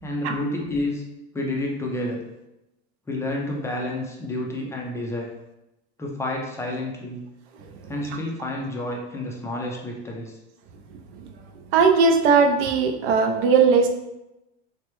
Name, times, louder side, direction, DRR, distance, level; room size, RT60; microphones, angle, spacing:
voice 1, 0.0-1.0 1.3-2.2 3.1-5.3 6.0-7.2 7.9-10.4, left 1 dB, 10° left, -1 dB, 0.3 m, -29 dB
voice 2, 11.7-13.9, right 5 dB, 65° right, 5 dB, 0.6 m, -18 dB
3.2 x 2.2 x 3.0 m, 0.92 s
supercardioid pair, 115°, 35 cm